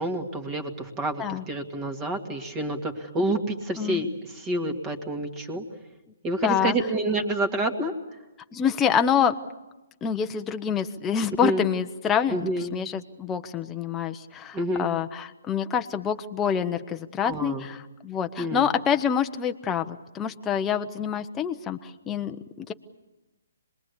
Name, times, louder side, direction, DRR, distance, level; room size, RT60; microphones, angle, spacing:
voice 1, 0.0-5.6 6.2-7.9 11.4-11.6 12.3-12.7 14.5-14.9 17.2-17.6 18.4-18.7, right 1 dB, 20° right, 6 dB, 2.3 m, -28 dB
voice 2, 6.4-6.8 8.5-9.4 10.0-22.7, left 8 dB, 15° left, 6 dB, 0.9 m, -27 dB
26.5 x 21.0 x 8.4 m, 1.1 s
hypercardioid pair, 145°, 0 cm